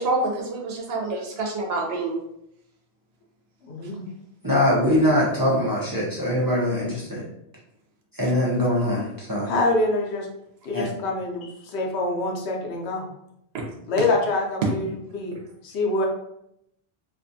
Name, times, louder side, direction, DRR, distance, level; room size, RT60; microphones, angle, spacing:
voice 1, 0.0-2.2, right 2 dB, 75° right, 0 dB, 0.9 m, -27 dB
voice 2, 3.6-4.1 9.4-10.3 10.6-13.1 13.9-15.4 15.6-16.1, left 2 dB, 85° left, 0 dB, 0.9 m, -25 dB
voice 3, 4.4-7.2 8.1-9.5 10.7-10.9, left 1 dB, 30° right, -6 dB, 0.4 m, -22 dB
2.6 x 2.3 x 2.6 m, 0.78 s
omnidirectional pair, 1.1 m